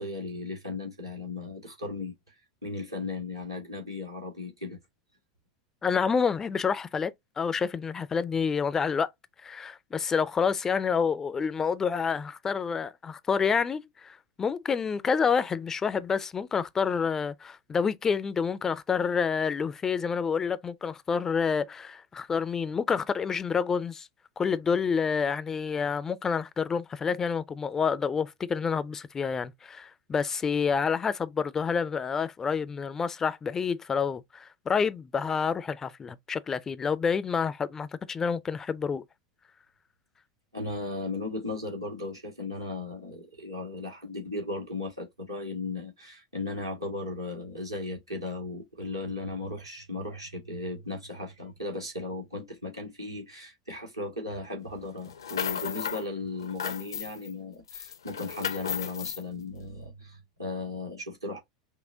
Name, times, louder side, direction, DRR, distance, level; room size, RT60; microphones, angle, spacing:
voice 1, 0.0-2.1 2.6-4.8 40.5-61.4, left 2 dB, 85° right, 1.7 m, -36 dB
voice 2, 5.8-9.1 9.4-24.1 24.4-39.0, left 6 dB, 20° left, 0.4 m, -28 dB
sound 1, 55.0-56.1 56.4-57.3 57.7-59.2, left 8 dB, 70° left, 0.5 m, -34 dB
5.5 x 2.1 x 2.6 m
figure-of-eight pair, 85°, 2 cm